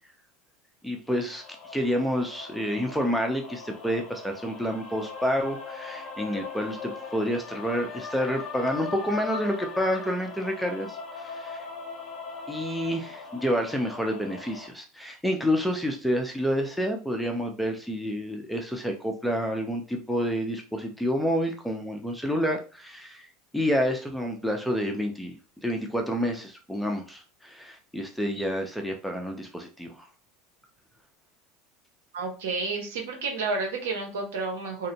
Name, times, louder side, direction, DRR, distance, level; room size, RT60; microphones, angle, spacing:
voice 1, 0.8-1.4 1.7-11.7 12.5-23.3 23.5-25.4 25.6-29.9, equal, ahead, 2 dB, 0.5 m, -29 dB
sound 1, 1.1-14.7, left 5 dB, 45° left, 0.8 m, -40 dB
voice 2, 32.1-34.9, right 3 dB, 85° right, 3 dB, 0.7 m, -30 dB
2.6 x 2.0 x 2.8 m, 0.34 s
supercardioid pair, 110°, 0 cm